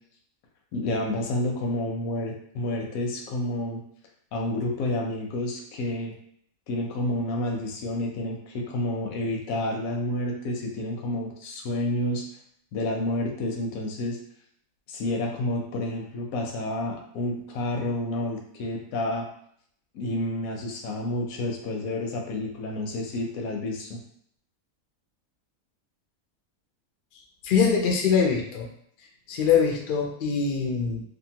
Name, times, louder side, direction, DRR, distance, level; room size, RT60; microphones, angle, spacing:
voice 1, 0.7-3.8 4.3-6.1 6.7-12.2 12.7-14.2 14.9-19.3 19.9-24.0, left 1 dB, 80° left, 1 dB, 1.1 m, -29 dB
voice 2, 27.4-28.7 29.3-31.0, left 6 dB, 65° left, 1 dB, 0.5 m, -23 dB
2.7 x 2.4 x 2.7 m, 0.66 s
omnidirectional pair, 1.5 m